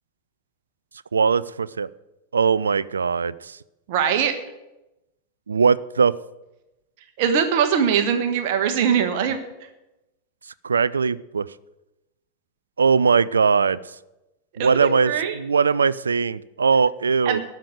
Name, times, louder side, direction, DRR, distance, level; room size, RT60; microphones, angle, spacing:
voice 1, 1.1-1.9 2.3-3.6 5.5-6.2 10.6-11.5 12.8-13.8 14.6-17.4, right 5 dB, 75° right, 20 dB, 0.4 m, -20 dB
voice 2, 3.9-4.3 7.2-9.4 14.6-15.3 17.2-17.4, right 7 dB, 50° right, 7 dB, 1.3 m, -21 dB
12.5 x 6.6 x 8.9 m, 0.95 s
figure-of-eight pair, 90°, 0 cm